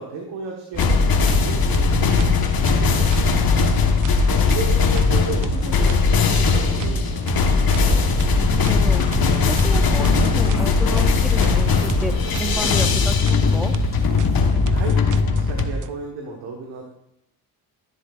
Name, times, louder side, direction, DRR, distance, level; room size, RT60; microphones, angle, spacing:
voice 1, 0.0-8.0 14.7-15.0 15.3-16.9, right 3 dB, 85° right, 0 dB, 1.5 m, -34 dB
sound 1, 0.7-15.9, right 5 dB, 50° right, 0.6 m, -30 dB
sound 2, 0.8-15.7, left 5 dB, 60° left, 1.3 m, -19 dB
voice 2, 4.3-4.6 8.3-9.0 9.5-12.1 12.4-13.7, equal, ahead, 6 dB, 1.1 m, -31 dB
sound 3, 8.9-14.4, left 2 dB, 40° left, 2.5 m, -31 dB
13.5 x 7.5 x 2.5 m, 0.79 s
supercardioid pair, 60°, 41 cm